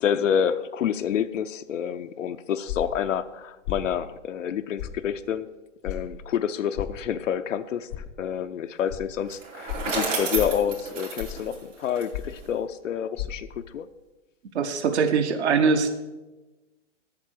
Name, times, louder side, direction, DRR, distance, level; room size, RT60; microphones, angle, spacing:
voice 1, 0.0-5.5 5.8-13.5 13.7-13.9, left 8 dB, 85° left, 8 dB, 0.6 m, -28 dB
sound 1, 2.7-3.0 3.6-3.9 4.8-5.0 5.8-6.0 6.7-7.0 7.9-8.0 8.9-9.0 9.7-9.9 10.3-10.6 11.2-11.5 12.1-12.4 13.1-13.3, left 12 dB, 15° left, 0.4 m, -33 dB
Bicycle, 9.3-12.5, right 4 dB, 85° right, 3.2 m, -31 dB
voice 2, 14.5-15.9, right 5 dB, 60° right, 7 dB, 1.0 m, -22 dB
8.5 x 6.6 x 6.3 m, 1.1 s
hypercardioid pair, 145°, 37 cm